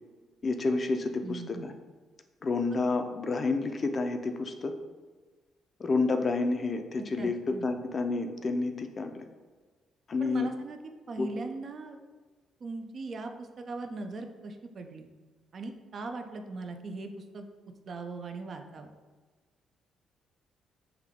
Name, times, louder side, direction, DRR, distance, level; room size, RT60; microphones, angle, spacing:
voice 1, 0.4-1.7 2.4-4.7 5.8-9.3 10.1-10.5 11.2-11.3, left 3 dB, 40° left, 6 dB, 0.4 m, -29 dB
voice 2, 1.2-1.7 2.7-2.8 7.0-7.7 10.2-10.8 11.1-12.0 12.6-15.1 15.5-17.5 17.9-18.9, right 3 dB, 50° right, 6 dB, 0.4 m, -40 dB
3.4 x 2.2 x 3.5 m, 1.4 s
cardioid pair, 90°, 0 cm